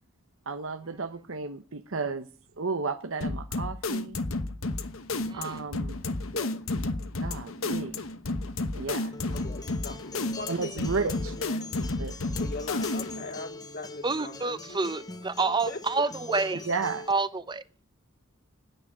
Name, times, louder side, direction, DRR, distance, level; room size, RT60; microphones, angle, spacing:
voice 1, 0.5-2.3 2.6-4.2 5.3-6.0 7.2-8.0 8.7-9.1 10.5-11.3 12.0-12.3 16.6-17.0, right 4 dB, 75° right, 0.9 m, -33 dB
sound 1, 3.2-13.3, left 2 dB, 85° left, 1.2 m, -32 dB
Acoustic guitar, 9.1-17.1, left 3 dB, 20° left, 0.7 m, -44 dB
voice 2, 9.3-11.7 12.4-15.0 15.7-16.4, left 2 dB, 50° left, 2.4 m, -40 dB
voice 3, 14.0-16.6 17.1-17.6, right 3 dB, 20° right, 0.7 m, -28 dB
10.0 x 9.0 x 9.8 m
head